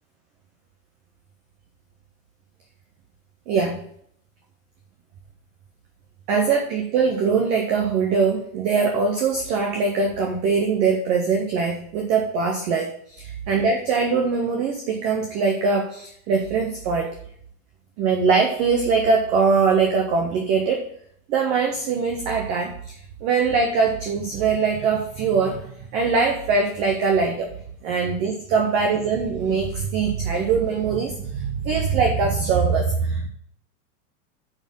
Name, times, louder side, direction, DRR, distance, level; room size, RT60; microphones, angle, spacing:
voice 1, 3.5-3.8 6.3-17.1 18.0-20.9 21.3-22.9 23.2-33.3, right 5 dB, 15° right, 2 dB, 0.5 m, -22 dB
8.7 x 4.3 x 7.3 m, 0.66 s
supercardioid pair, 165°, 43 cm